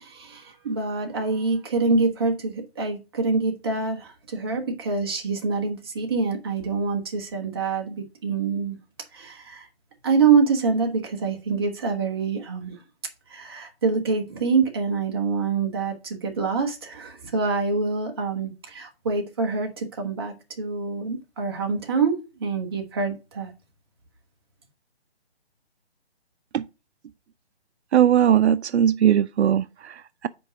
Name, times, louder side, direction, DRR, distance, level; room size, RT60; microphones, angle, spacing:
voice 1, 0.0-8.8 9.1-9.7 10.0-12.8 13.3-23.5, right 4 dB, 20° right, 1.1 m, -25 dB
voice 2, 27.9-30.3, right 9 dB, 80° right, 0.5 m, -20 dB
5.3 x 4.5 x 6.1 m
hypercardioid pair, 170°, 33 cm